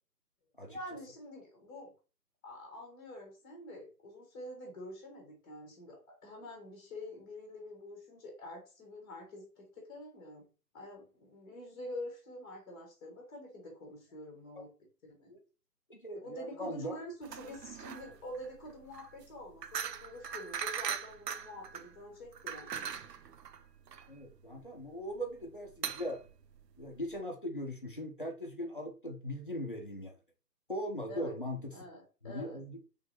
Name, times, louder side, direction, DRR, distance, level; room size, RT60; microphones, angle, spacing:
voice 1, 0.7-1.9 2.4-10.5 10.7-14.7 15.0-15.3 16.1-22.9 31.1-31.3 31.7-32.6, left 1 dB, 15° left, 1.0 m, -47 dB
voice 2, 15.9-17.0 24.1-26.2 26.8-30.1 30.7-31.7 32.2-32.8, equal, 35° left, 0.5 m, -39 dB
sound 1, 17.2-27.2, right 7 dB, 75° right, 0.6 m, -41 dB
3.9 x 3.2 x 2.8 m
figure-of-eight pair, 150°, 50 cm